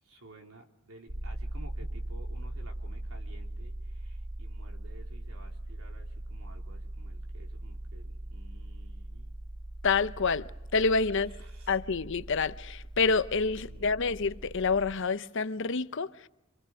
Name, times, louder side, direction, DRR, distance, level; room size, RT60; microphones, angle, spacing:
voice 1, 0.0-9.3 11.2-11.8 13.6-14.1, right 2 dB, 90° right, 3.5 m, -54 dB
sound 1, 1.1-14.9, right 1 dB, 50° right, 2.0 m, -40 dB
voice 2, 9.8-11.3 11.7-16.3, left 4 dB, 60° left, 0.8 m, -28 dB
26.5 x 26.0 x 6.3 m
head